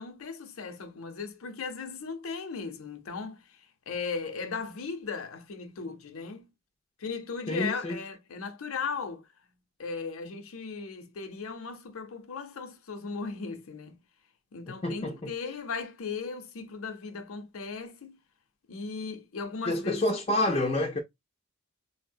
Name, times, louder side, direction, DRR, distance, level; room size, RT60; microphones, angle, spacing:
voice 1, 0.0-3.4 3.9-6.5 7.0-9.2 9.8-14.0 14.5-18.2 18.7-20.8, left 5 dB, 75° left, 0.6 m, -37 dB
voice 2, 7.5-8.0 14.7-15.3 19.7-21.0, left 1 dB, 25° left, 0.4 m, -28 dB
4.1 x 2.0 x 2.5 m
head